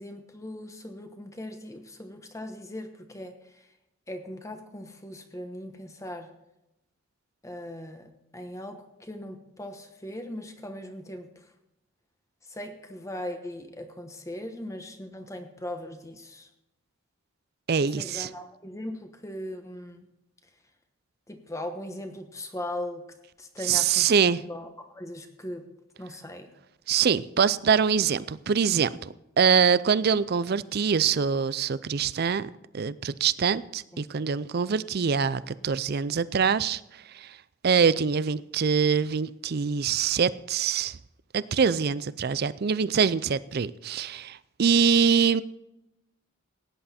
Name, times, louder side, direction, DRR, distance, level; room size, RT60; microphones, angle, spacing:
voice 1, 0.0-3.7 4.1-6.3 7.4-11.5 12.4-16.5 17.8-20.1 21.3-25.7 26.0-26.5 33.9-34.3, left 1 dB, 15° left, 1.1 m, -39 dB
voice 2, 17.7-18.3 23.7-24.4 26.9-37.4 37.6-41.0 41.3-45.4, right 6 dB, 50° right, 0.4 m, -24 dB
16.5 x 10.0 x 4.3 m
head